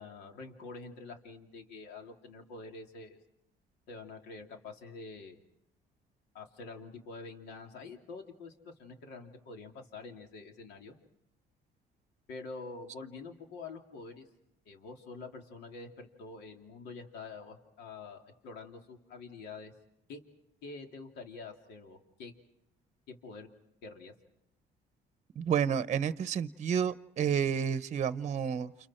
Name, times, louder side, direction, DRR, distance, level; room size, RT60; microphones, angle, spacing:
voice 1, 0.0-3.2 3.9-5.4 6.3-10.9 12.3-14.2 14.6-19.7 20.1-20.2 20.6-22.3 23.1-23.5 23.8-24.1, left 3 dB, 80° left, 3 dB, 3.2 m, -46 dB
voice 2, 25.4-28.7, right 7 dB, 45° right, 14 dB, 0.8 m, -30 dB
30.0 x 28.5 x 4.5 m, 0.79 s
cardioid pair, 110°, 17 cm